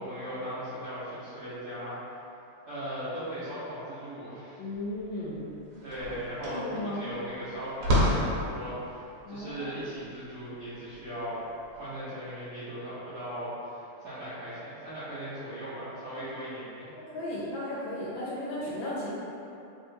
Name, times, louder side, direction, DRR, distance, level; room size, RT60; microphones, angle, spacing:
voice 1, 0.0-2.0 2.7-4.6 5.8-11.4 11.7-16.9, equal, 60° right, -14 dB, 1.0 m, -38 dB
voice 2, 4.6-5.5 6.5-7.0 9.2-9.7 16.2-16.3 17.0-19.1, left 1 dB, 75° left, -8 dB, 1.2 m, -35 dB
sound 1, 4.9-5.0 5.3-11.8, equal, 80° right, 1.7 m, -31 dB
3.7 x 3.0 x 2.6 m, 2.8 s
omnidirectional pair, 2.4 m